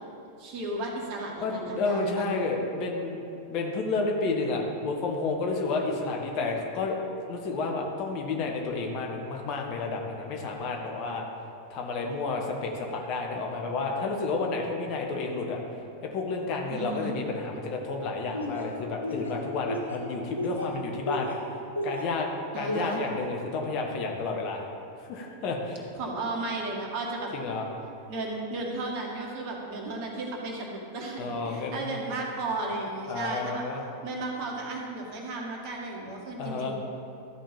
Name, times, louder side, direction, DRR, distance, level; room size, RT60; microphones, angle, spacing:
voice 1, 0.4-2.3 16.7-17.1 22.5-23.0 26.0-27.3 28.1-33.7 34.0-36.7, right 2 dB, 45° right, 0 dB, 1.9 m, -34 dB
voice 2, 1.4-7.0 7.3-11.2 11.7-15.6 16.1-21.4 21.8-24.7 25.0-25.9 27.3-27.7 31.2-31.9 33.1-33.8 36.4-36.7, left 3 dB, 40° left, 1 dB, 1.4 m, -31 dB
Laughter, 18.3-22.2 22.7-23.1, equal, 90° right, 1.9 m, -33 dB
12.5 x 5.4 x 7.2 m, 2.7 s
figure-of-eight pair, 90°, 0 cm